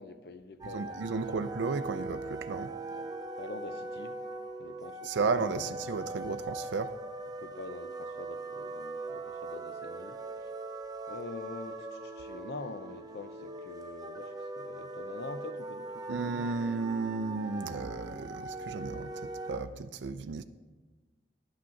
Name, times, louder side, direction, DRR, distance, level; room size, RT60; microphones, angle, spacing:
voice 1, 0.0-1.1 2.9-3.1 3.4-4.2 4.6-5.2 5.5-5.7 7.4-10.5 11.1-16.2, left 3 dB, 60° left, 0.5 m, -45 dB
sound 1, 0.6-19.6, right 2 dB, 20° right, 0.5 m, -41 dB
voice 2, 0.7-2.7 5.0-6.9 16.1-20.4, right 4 dB, 85° right, 0.4 m, -34 dB
10.5 x 6.2 x 5.7 m
head